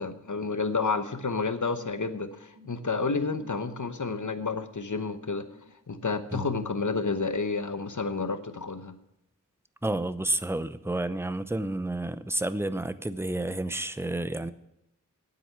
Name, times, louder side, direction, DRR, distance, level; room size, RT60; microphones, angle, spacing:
voice 1, 0.0-5.5 5.9-9.0, left 4 dB, 65° left, 10 dB, 1.0 m, -30 dB
sound 1, 5.4-5.7, left 2 dB, 90° right, 3.5 m, -54 dB
voice 2, 9.8-14.5, right 1 dB, 10° right, 13 dB, 0.6 m, -30 dB
9.2 x 8.2 x 9.3 m, 0.85 s
wide cardioid pair, 45°, 33 cm